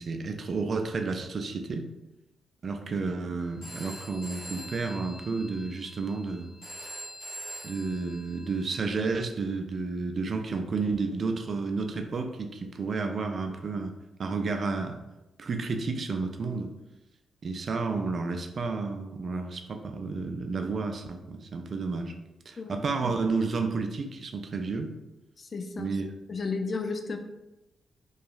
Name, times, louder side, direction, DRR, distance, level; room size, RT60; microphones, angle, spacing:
voice 1, 0.0-1.9 2.6-6.5 7.6-13.9 14.2-15.0 15.4-16.7 17.4-22.1 22.5-24.9 25.8-26.1, right 4 dB, 55° right, 5 dB, 0.3 m, -31 dB
Telephone, 3.6-9.2, equal, 80° left, 0.9 m, -44 dB
voice 2, 25.4-25.9 26.3-27.2, left 4 dB, 50° left, 6 dB, 0.3 m, -33 dB
2.7 x 2.3 x 2.4 m, 0.98 s
hypercardioid pair, 45°, 0 cm